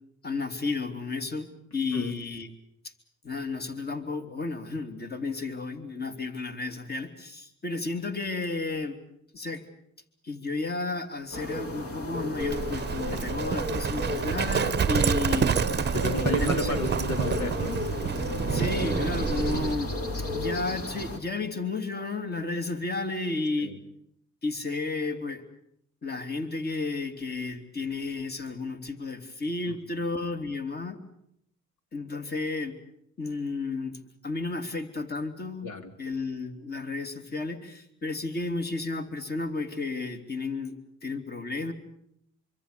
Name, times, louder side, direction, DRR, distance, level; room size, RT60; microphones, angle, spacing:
voice 1, 0.2-2.5 2.8-2.9 3.2-9.0 9.3-9.7 10.2-15.6 16.2-16.8 18.5-19.9 20.3-23.7 24.4-25.4 26.0-31.0 31.9-32.8 33.2-34.0 34.2-35.7 36.0-41.7, left 3 dB, 35° left, 7 dB, 3.0 m, -32 dB
sound 1, 11.3-21.2, left 1 dB, 50° left, 4.3 m, -33 dB
Livestock farm animals working animals, 12.4-19.8, right 7 dB, 35° right, 0.9 m, -28 dB
voice 2, 15.9-17.9 19.3-19.7 23.6-23.8 29.6-30.0 35.6-35.9, left 2 dB, 70° left, 7 dB, 3.4 m, -33 dB
25.0 x 25.0 x 6.8 m, 0.72 s
cardioid pair, 90°, 30 cm